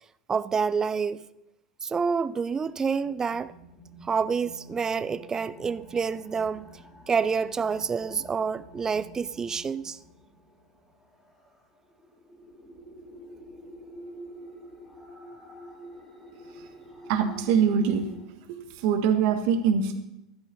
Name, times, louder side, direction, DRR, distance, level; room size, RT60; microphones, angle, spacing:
voice 1, 0.3-1.2 1.8-3.5 4.0-6.7 7.1-10.0, right 5 dB, 20° right, 0.4 m, -28 dB
sound 1, 2.5-18.3, right 1 dB, 10° left, 3.3 m, -49 dB
voice 2, 17.1-18.1 18.5-20.0, right 7 dB, 55° right, 1.8 m, -24 dB
15.0 x 12.0 x 4.1 m
figure-of-eight pair, 85°, 3 cm